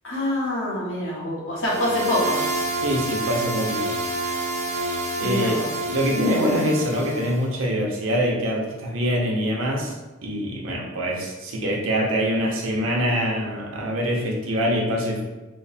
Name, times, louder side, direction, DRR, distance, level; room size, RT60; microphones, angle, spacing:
voice 1, 0.0-2.4 5.2-5.7, left 1 dB, 70° left, -6 dB, 1.2 m, -25 dB
sound 1, 1.6-7.4, right 2 dB, 35° right, 0.4 m, -28 dB
voice 2, 2.8-3.9 5.2-5.6 5.9-9.9 10.2-15.2, equal, 75° right, -1 dB, 0.7 m, -24 dB
3.2 x 2.0 x 4.1 m, 1.2 s
head